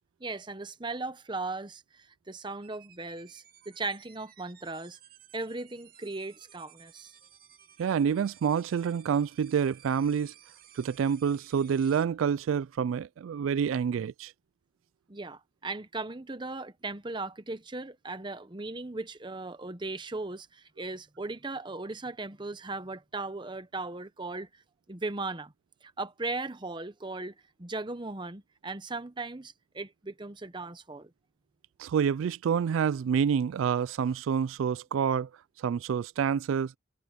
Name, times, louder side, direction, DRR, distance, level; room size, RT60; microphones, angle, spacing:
voice 1, 0.2-5.0 5.3-7.1 15.1-24.6 24.9-25.5 25.8-31.1, right 3 dB, 25° right, 0.9 m, -37 dB
sound 1, 2.6-12.1, right 10 dB, 50° right, 2.3 m, -57 dB
voice 2, 7.8-10.3 10.8-14.3 31.8-35.3 35.6-36.7, right 7 dB, 90° right, 0.3 m, -28 dB
head